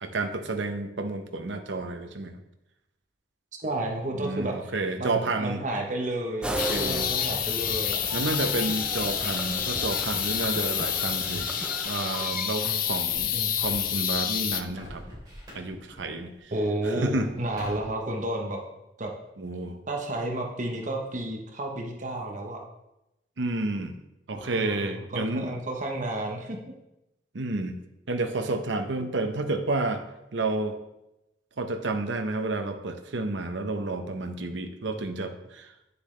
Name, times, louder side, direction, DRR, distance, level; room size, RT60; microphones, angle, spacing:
voice 1, 0.0-2.4 4.1-5.6 6.7-7.1 8.1-15.0 15.5-16.5 16.8-17.3 19.4-19.8 23.4-24.0 24.3-25.5 27.3-27.8 28.1-30.0 30.3-30.8 31.6-35.7, right 2 dB, 80° right, 7 dB, 0.8 m, -30 dB
voice 2, 3.6-4.7 5.0-8.0 12.6-12.9 13.2-13.6 16.5-18.6 19.0-19.1 19.9-22.6 24.3-26.7, right 1 dB, 40° right, 1 dB, 1.0 m, -32 dB
sound 1, 6.4-12.4, right 1 dB, 5° right, 0.7 m, -35 dB
sound 2, 6.6-14.6, left 9 dB, 50° left, 0.5 m, -29 dB
Alarm, 8.0-16.2 16.6-17.8, right 1 dB, 20° right, 3.4 m, -46 dB
9.7 x 6.9 x 3.2 m, 0.90 s
head